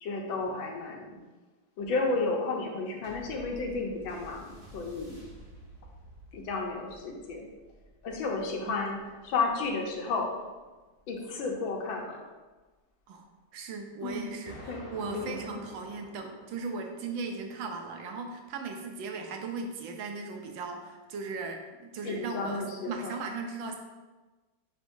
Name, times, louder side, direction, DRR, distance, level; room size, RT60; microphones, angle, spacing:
voice 1, 0.0-1.2 1.8-5.2 6.3-7.5 8.0-9.0 9.2-10.3 11.1-12.2 14.0-14.4 14.7-14.8 15.1-15.6 22.0-23.2, left 3 dB, 75° left, 1 dB, 1.6 m, -32 dB
sound 1, 3.0-11.8 12.6-12.7, equal, 50° right, 2.1 m, -52 dB
voice 2, 13.5-23.8, right 4 dB, 75° right, 3 dB, 1.4 m, -38 dB
Explosion, 14.5-17.4, equal, 35° left, 1.7 m, -49 dB
10.0 x 3.8 x 2.6 m, 1.2 s
omnidirectional pair, 2.2 m